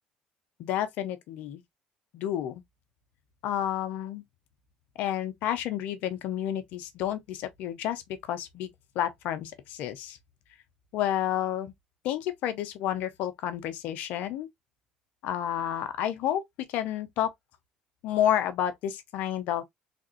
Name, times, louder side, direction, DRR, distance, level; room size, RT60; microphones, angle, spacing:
voice 1, 0.6-1.6 2.1-2.6 3.4-4.2 5.0-8.0 8.3-8.7 9.0-10.2 10.9-11.7 12.0-14.5 15.2-16.4 16.7-17.3 18.0-19.6, left 11 dB, 70° left, 0.6 m, -30 dB
3.4 x 2.4 x 2.4 m
supercardioid pair, 85°, 3 cm